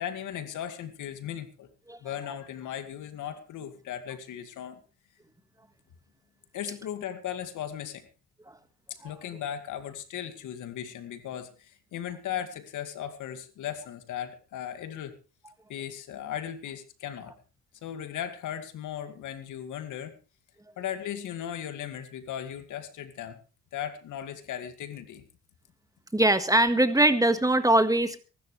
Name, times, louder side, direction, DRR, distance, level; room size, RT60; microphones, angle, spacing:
voice 1, 0.0-1.7 2.0-4.8 6.5-8.1 8.9-15.1 15.7-17.3 17.8-20.2 20.8-23.4 23.7-25.3, left 10 dB, 80° left, 9 dB, 2.2 m, -37 dB
voice 2, 26.1-28.2, right 1 dB, 10° right, 9 dB, 1.7 m, -22 dB
23.5 x 12.5 x 3.3 m, 0.33 s
cardioid pair, 90°, 30 cm